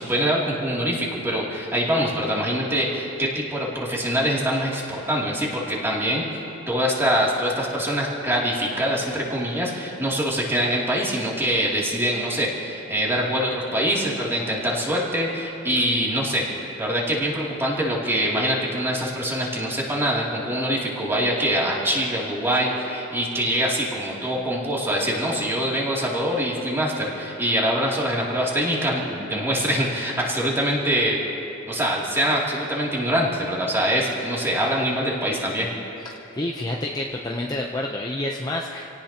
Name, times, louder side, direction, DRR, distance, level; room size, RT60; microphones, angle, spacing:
voice 1, 0.0-6.2 6.7-16.5 16.8-31.2 31.7-35.7, equal, 10° right, -5 dB, 2.8 m, -24 dB
voice 2, 36.0-38.9, left 1 dB, 20° left, -1 dB, 0.7 m, -29 dB
28.0 x 17.5 x 3.0 m, 2.9 s
head